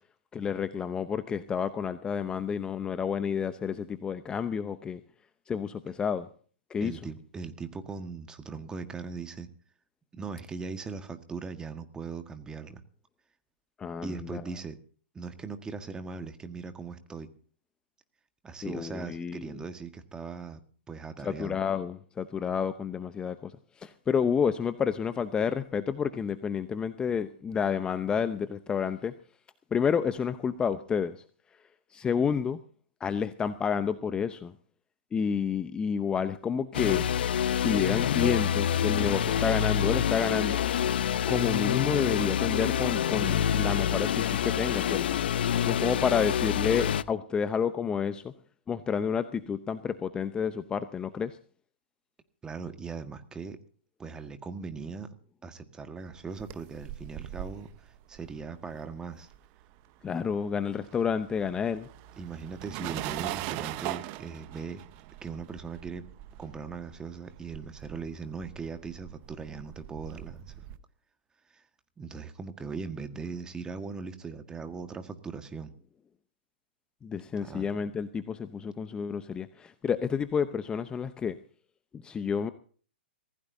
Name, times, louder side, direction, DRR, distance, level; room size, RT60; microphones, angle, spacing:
voice 1, 0.3-5.0 5.5-6.3 6.7-7.0 13.8-14.4 18.6-19.5 21.2-23.5 23.8-29.1 29.7-31.2 31.9-32.6 33.0-34.5 35.1-37.1 37.6-40.6 41.3-45.0 45.6-48.3 48.7-51.4 60.0-61.9 77.0-81.3 81.9-82.5, left 6 dB, 15° left, 0.8 m, -30 dB
voice 2, 6.8-9.5 10.1-12.8 14.0-14.8 15.1-17.3 18.4-20.6 20.9-21.6 52.4-53.6 54.0-55.1 55.4-59.3 62.2-64.8 65.2-66.1 66.4-70.6 71.5-71.6 72.0-75.7 77.4-77.7, right 4 dB, 10° right, 1.6 m, -39 dB
sound 1, 36.7-47.0, left 9 dB, 60° left, 0.8 m, -27 dB
sound 2, 56.1-59.8 60.0-70.8, right 15 dB, 35° right, 1.0 m, -41 dB
25.0 x 16.0 x 2.7 m
hypercardioid pair, 125°, 6 cm